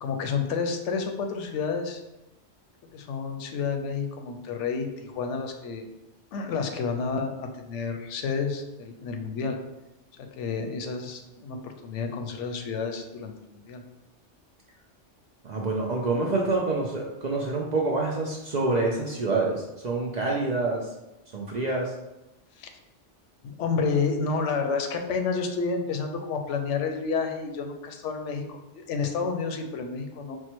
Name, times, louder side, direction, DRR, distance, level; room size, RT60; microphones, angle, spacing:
voice 1, 0.0-2.0 2.9-5.9 6.3-9.6 10.4-13.8 22.6-22.7 23.4-30.4, left 5 dB, 80° left, 5 dB, 0.9 m, -30 dB
voice 2, 15.4-20.9 21.3-21.9, right 3 dB, 50° right, -2 dB, 0.5 m, -27 dB
4.5 x 2.2 x 4.4 m, 0.98 s
omnidirectional pair, 1.2 m